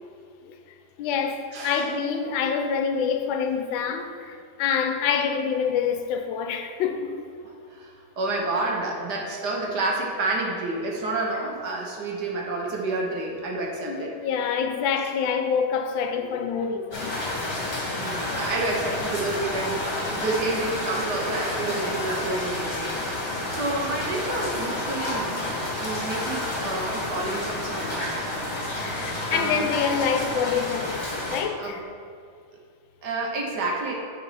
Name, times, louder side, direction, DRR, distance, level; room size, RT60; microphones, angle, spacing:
voice 1, 1.0-7.1 13.8-17.1 28.8-31.0 31.3-31.9, left 6 dB, 75° left, 1.3 m, -26 dB
voice 2, 1.5-1.9 7.4-14.1 17.9-23.0 23.5-25.5 25.8-28.2 29.3-29.7 31.6-31.8 33.0-33.9, right 2 dB, 60° right, 1.4 m, -29 dB
sound 1, 16.9-31.4, left 1 dB, 40° left, 1.7 m, -30 dB
9.2 x 4.1 x 4.8 m
omnidirectional pair, 2.2 m